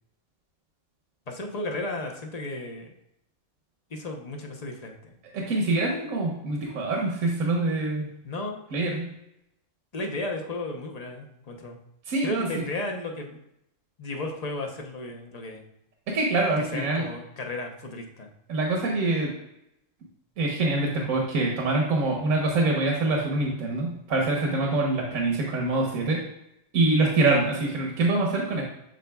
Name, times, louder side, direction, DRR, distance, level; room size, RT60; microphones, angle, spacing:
voice 1, 1.3-2.9 3.9-5.2 8.2-8.6 9.9-11.8 12.2-13.4 14.0-15.6 16.7-18.3, left 2 dB, 35° left, 2 dB, 0.8 m, -34 dB
voice 2, 5.3-8.1 8.7-9.1 12.1-12.6 16.1-17.1 18.5-19.3 20.4-26.2 26.7-28.6, right 2 dB, 75° right, -1 dB, 1.4 m, -25 dB
11.5 x 4.0 x 2.3 m, 0.82 s
omnidirectional pair, 1.4 m